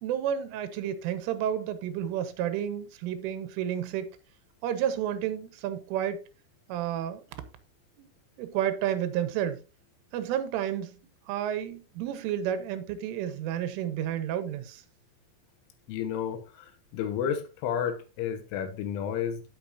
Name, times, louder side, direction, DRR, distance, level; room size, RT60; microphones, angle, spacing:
voice 1, 0.0-4.2 4.6-6.3 6.7-7.2 8.0-8.1 8.4-9.6 10.1-10.9 11.3-14.8, right 10 dB, 85° right, 3.7 m, -31 dB
voice 2, 15.9-19.4, left 8 dB, 80° left, 3.8 m, -32 dB
16.5 x 6.6 x 2.7 m
omnidirectional pair, 5.5 m